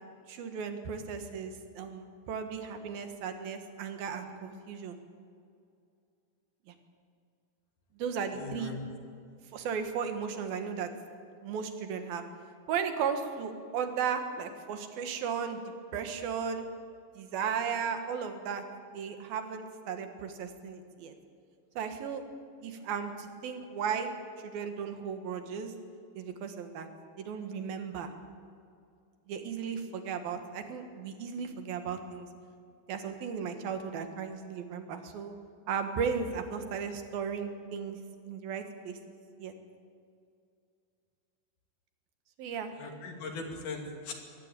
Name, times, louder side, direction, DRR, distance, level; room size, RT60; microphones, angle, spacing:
voice 1, 0.3-5.0 6.7-6.8 8.0-8.7 9.5-10.9 11.4-12.2 12.7-15.6 15.9-16.6 17.2-18.6 18.9-21.1 21.8-22.2 22.6-24.1 24.4-25.7 26.2-26.9 27.2-28.1 29.3-32.3 32.9-35.4 35.7-38.0 38.3-39.0 39.4-39.5 42.4-42.7, right 6 dB, 85° right, 7 dB, 3.5 m, -35 dB
voice 2, 8.3-8.8 42.8-44.1, left 4 dB, 60° left, 3 dB, 4.0 m, -39 dB
23.5 x 17.0 x 9.1 m, 2.4 s
omnidirectional pair, 4.1 m